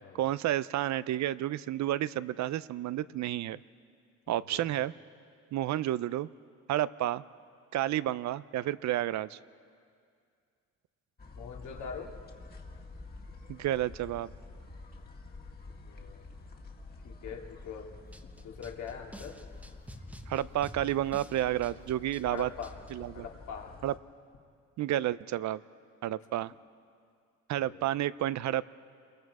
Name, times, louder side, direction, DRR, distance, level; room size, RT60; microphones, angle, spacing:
voice 1, 0.1-3.6 4.3-4.9 5.5-6.3 6.7-7.2 7.7-9.4 13.5-14.3 20.3-22.5 22.9-23.3 23.8-23.9 24.8-25.6 26.0-26.5 27.5-28.6, right 13 dB, 70° right, 17 dB, 0.5 m, -31 dB
voice 2, 4.3-4.7 11.3-12.1 15.8-16.3 17.0-17.9 18.4-19.4 22.3-22.8 23.1-23.8 27.7-27.8, left 6 dB, 70° left, 0 dB, 2.4 m, -43 dB
sound 1, 11.2-24.0, left 3 dB, 30° left, 1.9 m, -49 dB
sound 2, 18.1-22.9, equal, 5° right, 1.1 m, -49 dB
28.0 x 22.0 x 4.8 m, 2.2 s
cardioid pair, 90°, 30 cm